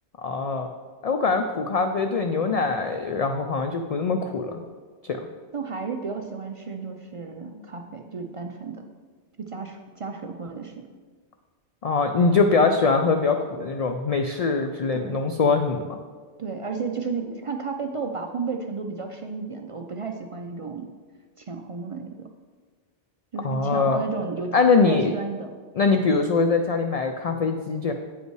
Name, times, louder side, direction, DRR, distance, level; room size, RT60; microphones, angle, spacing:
voice 1, 0.2-0.7 1.0-4.6 5.0-5.2 11.8-16.0 23.4-24.0 24.5-25.1 25.7-27.9, left 4 dB, 65° left, 5 dB, 0.3 m, -22 dB
voice 2, 5.5-8.8 9.4-10.7 14.9-15.2 16.4-20.9 21.4-22.3 23.3-24.6 24.8-25.5, right 4 dB, 55° right, 4 dB, 0.3 m, -33 dB
8.3 x 5.4 x 4.6 m, 1.5 s
omnidirectional pair, 1.2 m